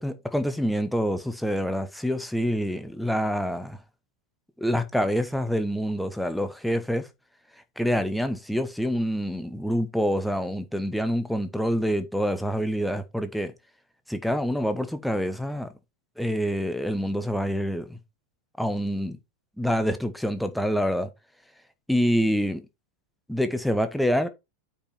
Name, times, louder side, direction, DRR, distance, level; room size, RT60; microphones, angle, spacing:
voice 1, 0.0-3.8 4.6-7.1 7.8-13.5 14.1-15.7 16.2-18.0 18.6-19.2 19.6-21.1 21.9-22.6 23.3-24.3, equal, ahead, 1.2 m, -26 dB
8.9 x 5.4 x 4.6 m
figure-of-eight pair, 90°, 0 cm